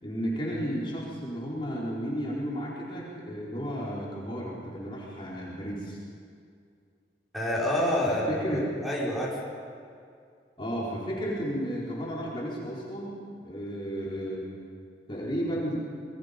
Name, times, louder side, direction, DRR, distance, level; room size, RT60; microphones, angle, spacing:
voice 1, 0.0-6.0 8.0-8.7 10.6-13.1 13.4-14.4 15.1-15.9, equal, 30° left, -6 dB, 4.5 m, -33 dB
voice 2, 7.3-9.4, left 1 dB, ahead, -7 dB, 5.3 m, -28 dB
27.5 x 22.0 x 5.4 m, 2.3 s
head